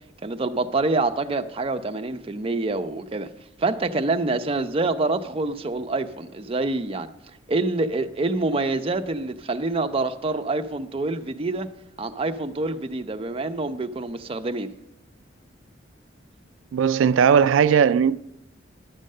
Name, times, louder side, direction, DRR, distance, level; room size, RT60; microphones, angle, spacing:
voice 1, 0.2-3.3 3.6-7.1 7.5-11.7 12.0-14.7, right 3 dB, 30° right, 0.5 m, -26 dB
voice 2, 16.7-18.2, right 7 dB, 90° right, 0.3 m, -18 dB
11.0 x 6.5 x 6.5 m
head